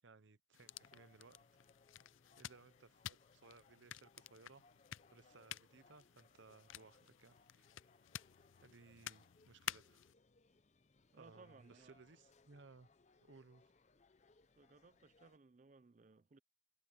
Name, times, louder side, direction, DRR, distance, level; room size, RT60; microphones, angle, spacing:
voice 1, 0.0-1.4 2.4-4.6 5.1-7.7 8.6-10.1 11.1-12.9 13.2-13.7, right 4 dB, 70° right, 0.8 m, -62 dB
sound 1, 0.5-10.1, left 12 dB, 80° left, 0.4 m, -52 dB
sound 2, 0.6-15.4, left 3 dB, 35° left, 0.6 m, -71 dB
voice 2, 11.1-12.0 14.6-16.4, right 3 dB, 40° right, 0.4 m, -63 dB
head